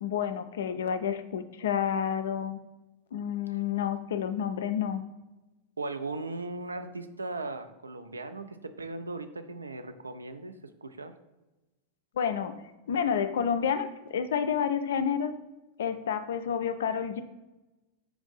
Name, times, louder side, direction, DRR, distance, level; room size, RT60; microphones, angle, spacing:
voice 1, 0.0-2.6 3.1-5.0 12.2-12.6 12.9-15.3 15.8-17.2, left 8 dB, 60° left, 10 dB, 0.3 m, -29 dB
voice 2, 5.8-11.2, right 2 dB, 75° right, 9 dB, 0.3 m, -38 dB
4.5 x 2.5 x 3.9 m, 1.1 s
figure-of-eight pair, 90°, 0 cm